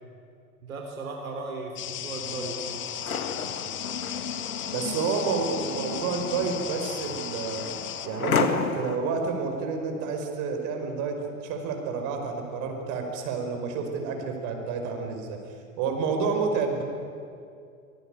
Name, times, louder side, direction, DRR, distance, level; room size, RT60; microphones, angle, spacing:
voice 1, 0.6-2.8, right 3 dB, 75° right, 2 dB, 3.5 m, -36 dB
sound 1, 1.8-8.1, left 11 dB, 30° left, 1.4 m, -36 dB
sound 2, 2.2-9.0, left 5 dB, 85° left, 2.0 m, -32 dB
voice 2, 4.7-7.7 8.0-11.2 11.4-15.4 15.8-16.8, right 5 dB, 45° right, 3 dB, 5.1 m, -29 dB
25.0 x 19.5 x 9.1 m, 2.4 s
figure-of-eight pair, 100°, 42 cm